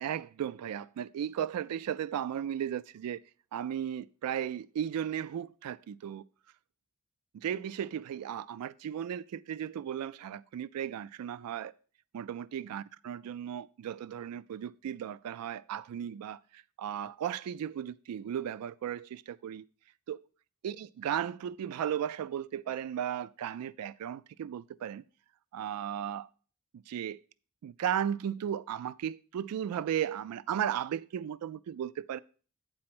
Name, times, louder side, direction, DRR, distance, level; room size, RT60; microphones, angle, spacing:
voice 1, 0.0-3.2 3.5-6.2 7.4-11.7 12.1-19.6 20.1-20.2 20.6-25.0 25.5-26.3 26.9-27.2 27.6-32.2, right 9 dB, 85° right, 0.3 m, -35 dB
8.5 x 4.3 x 6.0 m
head